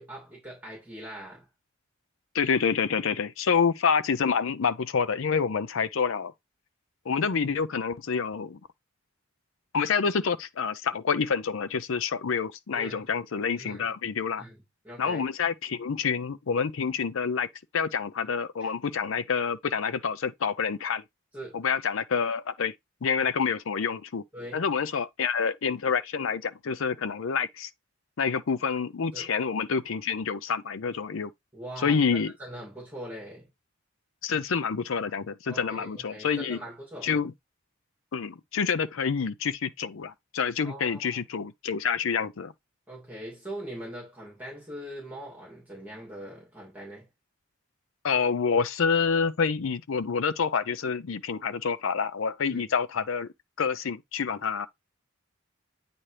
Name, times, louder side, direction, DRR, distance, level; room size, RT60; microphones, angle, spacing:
voice 1, 0.0-1.5 12.7-13.1 13.6-13.9 14.4-14.6 14.8-15.3 18.6-18.7 21.3-21.6 24.3-24.6 29.1-29.3 31.5-33.5 35.5-37.1 40.6-41.0 42.9-47.1 52.5-52.7, right 1 dB, 10° right, 2.6 m, -41 dB
voice 2, 2.3-6.3 7.1-8.6 9.7-14.4 15.0-17.5 17.7-21.0 21.5-22.7 23.0-24.2 24.5-27.7 28.2-31.3 31.8-32.3 34.2-36.6 37.0-37.3 38.1-42.5 48.0-53.3 53.6-54.7, left 6 dB, 70° left, 0.5 m, -27 dB
8.8 x 4.1 x 3.3 m
head